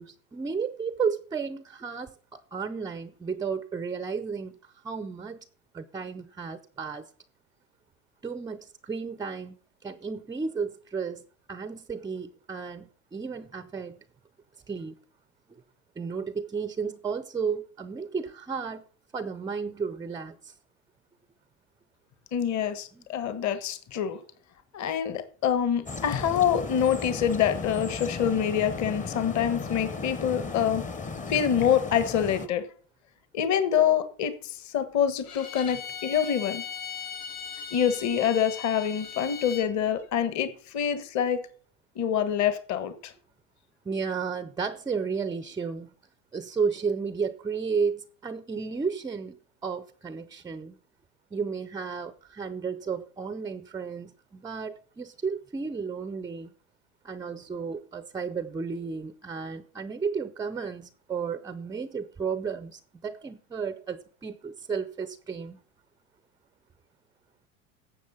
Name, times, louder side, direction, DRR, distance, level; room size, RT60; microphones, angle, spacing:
voice 1, 0.0-4.5 4.8-5.4 5.7-7.1 8.2-9.6 9.8-11.2 11.5-14.0 14.7-15.0 15.5-15.6 16.0-18.8 19.1-20.5 22.9-23.0 43.9-45.9 46.3-49.3 49.6-50.7 51.3-56.5 57.0-65.6, right 5 dB, 10° right, 0.4 m, -33 dB
voice 2, 22.3-24.2 24.7-30.8 31.3-32.7 33.3-36.6 37.7-41.4 41.9-43.1, left 8 dB, 40° left, 1.4 m, -26 dB
sound 1, 25.9-32.5, left 4 dB, 20° left, 0.8 m, -36 dB
Bowed string instrument, 35.2-39.7, left 6 dB, 70° left, 2.2 m, -38 dB
11.5 x 7.6 x 5.6 m
hypercardioid pair, 100°, 42 cm